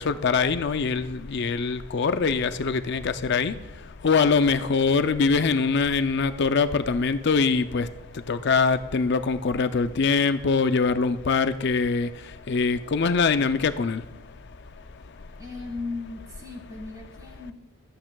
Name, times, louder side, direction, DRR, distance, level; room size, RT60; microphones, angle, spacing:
voice 1, 0.0-3.5 4.0-7.9 8.3-12.1 12.5-14.0, left 4 dB, 50° left, 11 dB, 0.5 m, -23 dB
voice 2, 15.4-17.5, left 3 dB, 15° right, 2 dB, 1.8 m, -36 dB
18.0 x 8.6 x 2.3 m, 1.1 s
head